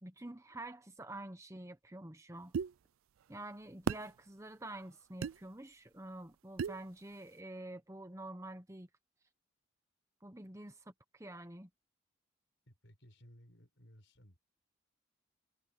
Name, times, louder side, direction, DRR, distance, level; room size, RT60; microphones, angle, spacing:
voice 1, 0.0-2.5 3.3-8.9 10.2-11.7, right 1 dB, 15° right, 1.0 m, -48 dB
sound 1, 2.5-2.7 3.9-4.1 5.2-5.4 6.6-6.8, right 6 dB, 80° right, 0.4 m, -34 dB
voice 2, 12.7-14.4, equal, 60° left, 5.6 m, -60 dB
head